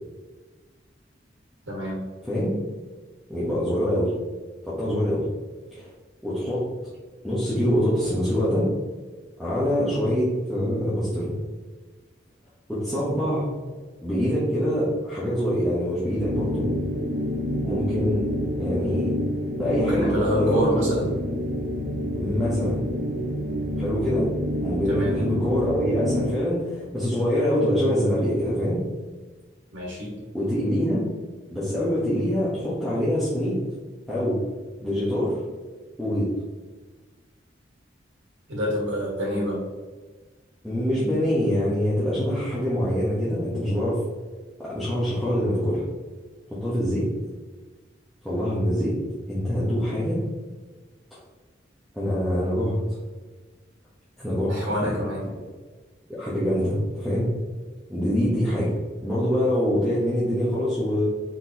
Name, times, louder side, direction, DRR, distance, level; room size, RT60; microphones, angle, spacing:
voice 1, 1.7-2.0 19.8-21.1 24.9-25.1 29.7-30.1 38.5-39.6 54.5-55.2, equal, 85° right, -4 dB, 1.4 m, -27 dB
voice 2, 2.2-2.5 3.3-4.1 4.6-5.2 5.7-5.9 6.2-6.7 7.2-8.7 9.4-11.3 12.7-13.5 14.0-16.7 17.6-18.2 18.6-19.1 19.6-20.7 22.1-22.8 23.8-24.3 24.6-28.8 30.3-31.0 31.5-33.6 34.1-34.4 34.8-35.4 36.0-36.3 40.6-44.0 44.6-45.8 46.5-47.1 48.2-49.0 49.3-50.2 51.9-52.8 54.2-54.9 56.1-57.3 57.9-58.7 59.0-61.1, equal, ahead, -12 dB, 1.0 m, -24 dB
sound 1, 16.1-26.5, equal, 50° right, 0.5 m, -28 dB
4.6 x 4.0 x 2.8 m, 1.3 s
head